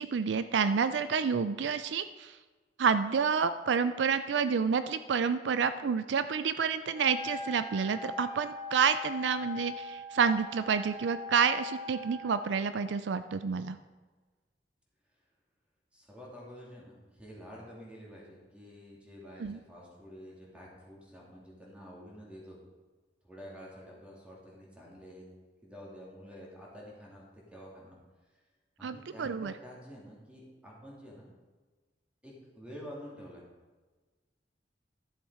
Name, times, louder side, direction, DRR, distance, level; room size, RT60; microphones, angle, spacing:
voice 1, 0.0-2.4 2.8-13.8 19.4-19.6 28.8-29.5, right 6 dB, 75° right, 12 dB, 0.4 m, -29 dB
Wind instrument woodwind instrument, 6.9-12.6, left 3 dB, 35° left, 1.5 m, -41 dB
voice 2, 15.9-22.6 23.2-25.3 25.6-28.0 28.8-31.3 32.2-33.4, equal, 5° right, -4 dB, 2.8 m, -49 dB
11.5 x 7.2 x 4.8 m, 1.3 s
head